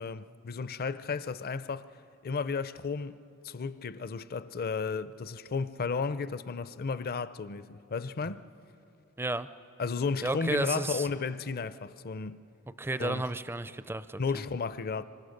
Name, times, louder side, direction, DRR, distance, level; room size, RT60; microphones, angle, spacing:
voice 1, 0.0-1.9 2.2-8.4 9.8-12.4 13.0-13.2 14.2-15.0, left 4 dB, 45° left, 0.5 m, -33 dB
voice 2, 9.2-9.5 10.2-11.1 12.8-14.2, right 2 dB, 10° right, 0.4 m, -32 dB
26.0 x 24.5 x 6.5 m
head